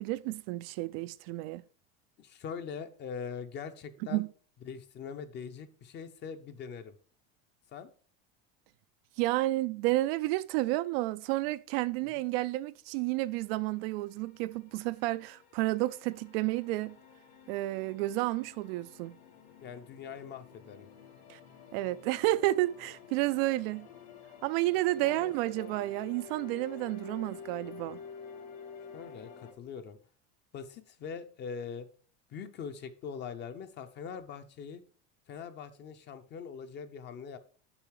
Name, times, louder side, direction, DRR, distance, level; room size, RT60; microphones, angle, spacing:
voice 1, 0.0-1.6 4.1-4.3 9.2-17.0 17.5-19.2 21.3-21.4 21.7-23.9 24.4-28.0, right 18 dB, 70° right, 0.4 m, -31 dB
voice 2, 2.2-4.2 4.6-6.9 7.7-7.9 12.1-12.2 19.6-20.9 25.0-25.7 28.9-30.0 30.5-31.9 32.3-34.8 35.3-37.4, left 6 dB, 35° left, 0.7 m, -42 dB
sound 1, 13.4-29.5, left 6 dB, 90° left, 2.3 m, -51 dB
7.1 x 5.4 x 4.8 m
supercardioid pair, 145°, 30 cm